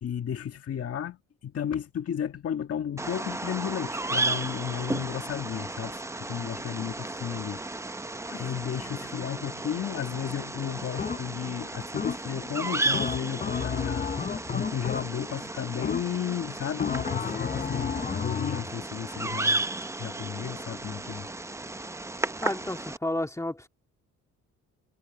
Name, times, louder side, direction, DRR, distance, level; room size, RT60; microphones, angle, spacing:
voice 1, 0.0-7.6 8.1-19.6 20.0-21.3, left 9 dB, 50° left, 1.6 m, -33 dB
Bird vocalization bird call bird song, 3.0-23.0, right 2 dB, 10° right, 0.7 m, -34 dB
sound 1, 11.0-11.5 12.0-12.5 12.9-15.4 15.8-16.4 16.8-18.7, left 6 dB, 25° left, 0.7 m, -32 dB
voice 2, 22.4-23.7, left 1 dB, 10° left, 2.1 m, -31 dB
cardioid pair, 90°, 30 cm